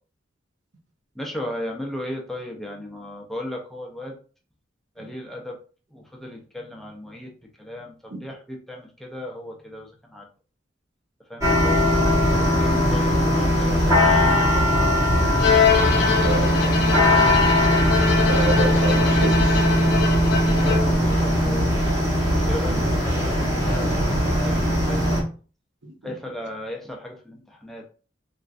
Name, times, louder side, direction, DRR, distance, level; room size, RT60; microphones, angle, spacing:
voice 1, 1.2-4.2 5.0-5.6 5.9-7.3 7.6-10.3 11.3-11.8 12.3-14.7 20.6-21.9 22.5-25.2 26.0-27.9, left 1 dB, ahead, 0.5 m, -36 dB
sound 1, 11.4-25.2, equal, 15° right, 1.0 m, -20 dB
Bowed string instrument, 15.4-21.1, left 6 dB, 65° left, 0.5 m, -24 dB
voice 2, 16.2-16.9 18.3-19.8 22.7-22.9 25.8-26.1, right 2 dB, 80° right, 0.8 m, -29 dB
3.1 x 2.5 x 2.4 m
head